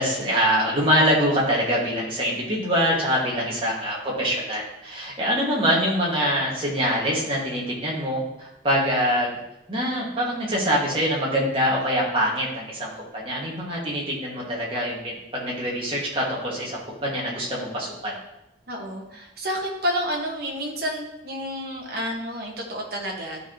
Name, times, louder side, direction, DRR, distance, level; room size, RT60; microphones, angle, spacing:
voice 1, 0.0-9.3 9.7-18.1, equal, 30° right, -4 dB, 2.0 m, -24 dB
voice 2, 18.7-23.4, equal, 55° right, -1 dB, 1.5 m, -30 dB
12.0 x 4.9 x 3.0 m, 0.90 s
head